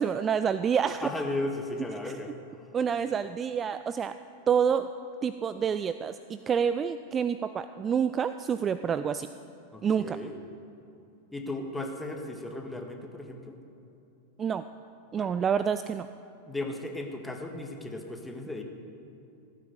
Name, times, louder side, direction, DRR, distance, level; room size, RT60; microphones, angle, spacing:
voice 1, 0.0-1.1 2.0-2.1 2.7-4.1 4.5-4.9 5.2-9.3 9.8-10.2 14.4-14.6 15.1-16.1, right 7 dB, 25° right, 12 dB, 0.4 m, -28 dB
voice 2, 1.0-2.3 9.7-10.4 11.3-13.6 15.1-15.3 16.5-18.6, left 2 dB, 5° left, 3 dB, 1.7 m, -35 dB
16.0 x 9.4 x 8.0 m, 2.7 s
figure-of-eight pair, 90°, 0 cm